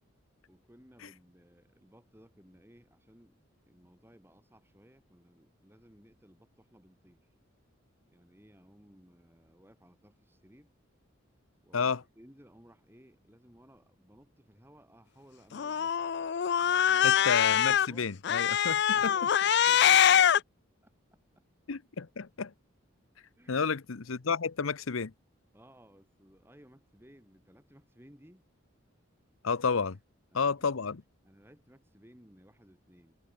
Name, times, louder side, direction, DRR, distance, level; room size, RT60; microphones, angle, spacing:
voice 1, 0.5-3.4 3.7-7.3 8.1-10.7 11.6-16.0 16.6-17.2 17.5-18.1 18.9-20.4 20.8-21.4 23.3-23.7 25.5-28.5 30.3-30.9 31.2-33.2, equal, 10° right, 5.0 m, -58 dB
Cat, 15.5-17.9 18.2-20.4, left 9 dB, 55° left, 0.4 m, -24 dB
voice 2, 17.0-19.1 21.7-22.5 23.5-25.1 29.4-30.0 30.3-31.0, left 5 dB, 75° left, 0.8 m, -31 dB
head